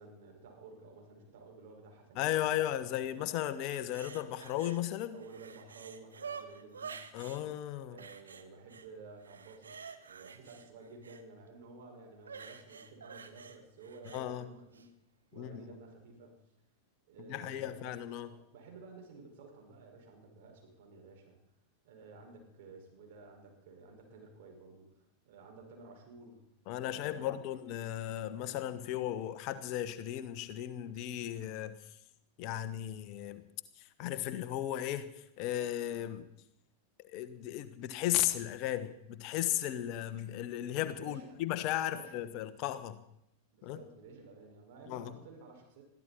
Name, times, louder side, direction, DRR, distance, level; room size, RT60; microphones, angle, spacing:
voice 1, 0.0-3.3 5.1-7.0 7.9-14.9 15.3-16.4 17.1-17.9 18.3-21.4 21.8-26.4 26.9-27.3 41.0-41.4 41.9-42.2 43.5-45.8, right 3 dB, 50° right, 2 dB, 5.2 m, -53 dB
voice 2, 2.2-5.2 7.1-8.0 14.1-14.5 15.4-15.7 17.3-18.3 26.7-31.8 32.4-33.4 33.8-35.1 35.4-36.3 37.0-43.0 43.6-43.8 44.9-45.1, left 12 dB, 40° left, 11 dB, 1.2 m, -35 dB
sound 1, 3.7-4.8 5.1-7.4 8.0-8.9 9.2-11.2 12.2-14.2 14.7-14.9, right 6 dB, 70° right, 1.2 m, -48 dB
21.0 x 14.5 x 4.2 m, 0.79 s
figure-of-eight pair, 90°, 0 cm